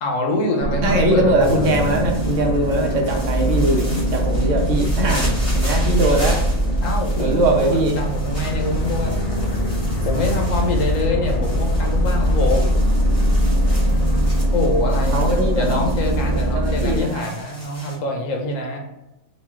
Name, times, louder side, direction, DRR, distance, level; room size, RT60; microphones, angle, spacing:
voice 1, 0.0-1.7 6.8-7.7 8.0-9.1 10.0-12.8 14.5-15.3 15.6-18.8, left 2 dB, 75° left, 1 dB, 1.2 m, -25 dB
two helicopters flying over, 0.6-17.0, equal, 50° left, 0.4 m, -21 dB
voice 2, 0.8-6.5 7.2-8.0 15.1-15.9 16.3-17.2, right 2 dB, 70° right, 2 dB, 1.0 m, -21 dB
sound 1, 1.4-18.0, equal, 30° left, 1.7 m, -37 dB
4.0 x 2.3 x 3.6 m, 0.95 s
omnidirectional pair, 1.4 m